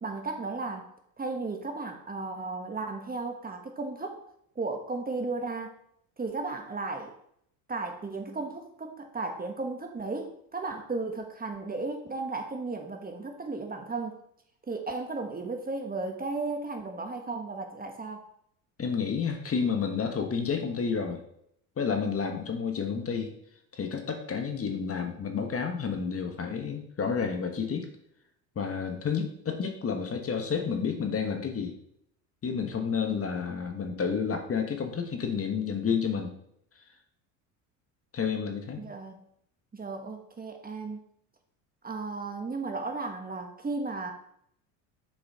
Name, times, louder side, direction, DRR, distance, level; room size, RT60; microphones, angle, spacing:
voice 1, 0.0-0.9 1.2-4.2 4.5-5.7 6.2-7.1 7.7-14.2 14.7-18.2 38.8-39.3 39.7-41.0 41.8-44.1, right 3 dB, 20° right, 4 dB, 1.3 m, -35 dB
voice 2, 18.8-21.2 21.8-23.3 23.7-27.9 28.5-31.8 32.4-36.3 38.1-38.8, left 6 dB, 30° left, 5 dB, 1.4 m, -30 dB
7.2 x 5.0 x 4.9 m, 0.71 s
supercardioid pair, 85°, 43 cm